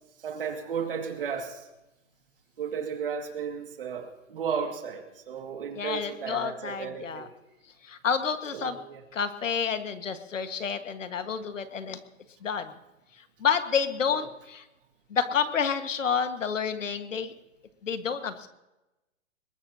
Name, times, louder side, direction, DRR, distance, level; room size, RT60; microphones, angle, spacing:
voice 1, 0.2-1.7 2.6-7.3 8.5-9.0 14.1-14.2, right 6 dB, 45° right, 4 dB, 2.2 m, -34 dB
voice 2, 5.7-7.3 7.8-8.8 9.1-12.0 12.4-12.7 13.4-14.6 15.1-17.3 17.8-18.5, left 6 dB, 70° left, 8 dB, 1.7 m, -29 dB
22.0 x 20.0 x 2.8 m, 0.98 s
hypercardioid pair, 170°, 39 cm